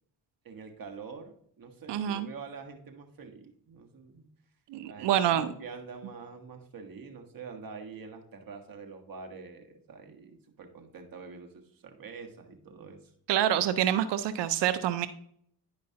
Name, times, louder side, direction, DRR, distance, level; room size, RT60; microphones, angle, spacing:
voice 1, 0.4-4.3 4.8-13.1, right 5 dB, 55° right, 4 dB, 1.5 m, -46 dB
voice 2, 1.9-2.3 4.7-5.5 13.3-15.1, right 11 dB, 80° right, 13 dB, 0.6 m, -27 dB
10.5 x 5.1 x 2.8 m, 0.66 s
supercardioid pair, 55°, 41 cm